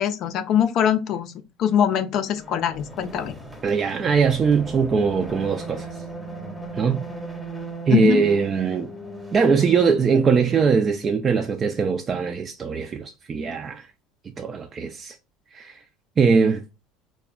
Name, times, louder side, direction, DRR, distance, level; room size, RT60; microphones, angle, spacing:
voice 1, 0.0-1.3 1.6-3.4 7.9-8.3, left 9 dB, 55° left, 0.4 m, -22 dB
sound 1, 2.3-11.5, right 1 dB, ahead, 0.8 m, -38 dB
voice 2, 3.6-5.9 6.7-7.0 7.9-8.9 9.3-13.9 14.4-15.2 15.5-15.8 16.2-16.6, right 5 dB, 35° right, 0.3 m, -21 dB
3.5 x 2.1 x 2.3 m
supercardioid pair, 100°, 0 cm